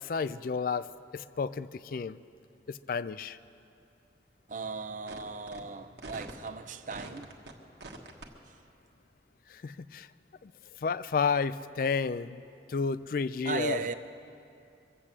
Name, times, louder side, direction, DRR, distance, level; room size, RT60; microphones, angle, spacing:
voice 1, 0.0-2.2 2.7-3.4 9.5-10.1 10.4-10.5 10.8-12.4 12.7-13.9, left 5 dB, 50° left, 0.4 m, -31 dB
voice 2, 4.5-7.3 8.5-8.6 13.4-14.0, right 4 dB, 45° right, 0.6 m, -37 dB
sound 1, 5.1-5.2 5.5-5.6 6.0-6.5 6.9-7.5 7.8-8.3, right 2 dB, 70° right, 1.4 m, -43 dB
23.5 x 8.2 x 7.4 m
head